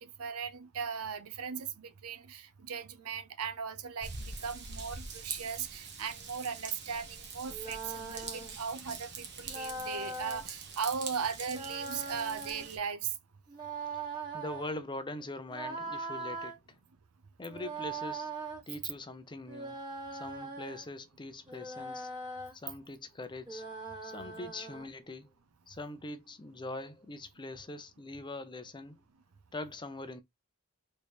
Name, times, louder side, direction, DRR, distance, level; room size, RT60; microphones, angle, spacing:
voice 1, 0.0-13.1, right 6 dB, 75° right, 0.7 m, -38 dB
Raindrop / Vehicle horn car horn honking / Trickle dribble, 4.0-12.8, right 5 dB, 50° right, 1.2 m, -44 dB
sound 1, 7.5-8.5 9.5-10.4 11.5-12.7 13.5-14.7 15.5-16.6 17.5-18.6 19.5-20.8 21.5-22.5 23.5-24.9, right 3 dB, 20° right, 1.6 m, -41 dB
voice 2, 14.3-16.6 17.4-18.3 18.7-19.8 20.1-22.1 22.5-23.7 24.0-25.3 25.7-29.0 29.5-30.2, left 2 dB, 20° left, 0.6 m, -42 dB
4.2 x 3.2 x 3.3 m
head